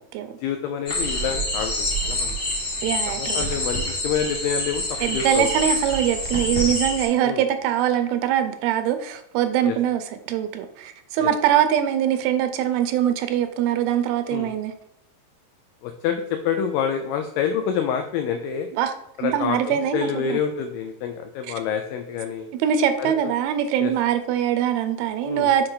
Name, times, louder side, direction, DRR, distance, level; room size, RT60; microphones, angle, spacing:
voice 1, 0.4-2.4 3.1-5.5 7.2-7.4 9.6-9.8 11.2-11.3 14.3-14.5 15.8-18.7 19.2-22.5 23.0-23.3 23.8-23.9 25.2-25.5, left 7 dB, 90° left, 6 dB, 1.9 m, -27 dB
sound 1, 0.9-7.1, left 1 dB, 45° left, 1.4 m, -26 dB
voice 2, 2.8-3.5 5.0-14.7 18.7-18.9 19.2-20.5 22.5-25.7, right 10 dB, 80° right, 9 dB, 2.3 m, -23 dB
6.3 x 4.4 x 3.8 m, 0.80 s
omnidirectional pair, 4.5 m